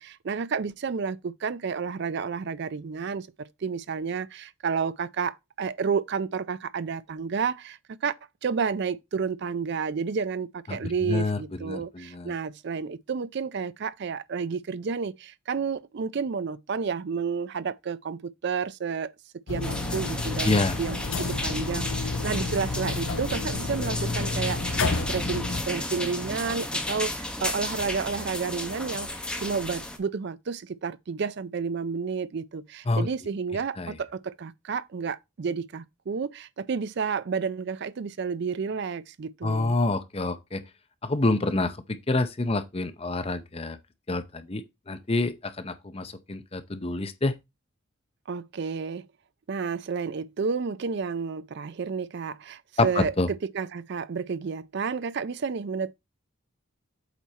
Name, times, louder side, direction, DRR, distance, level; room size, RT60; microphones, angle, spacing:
voice 1, 0.0-8.1 8.4-19.1 19.5-24.8 25.1-39.8 48.3-49.0 49.5-55.9, right 5 dB, 50° right, 0.4 m, -31 dB
voice 2, 10.7-12.3 20.4-20.8 32.9-33.1 33.8-34.0 39.4-40.6 41.0-43.8 44.1-47.4 52.8-53.3, left 2 dB, 25° left, 0.6 m, -27 dB
sound 1, 19.5-25.6, left 3 dB, 70° left, 0.8 m, -30 dB
sound 2, 19.6-30.0, left 1 dB, 5° left, 0.9 m, -33 dB
8.2 x 4.3 x 4.2 m
head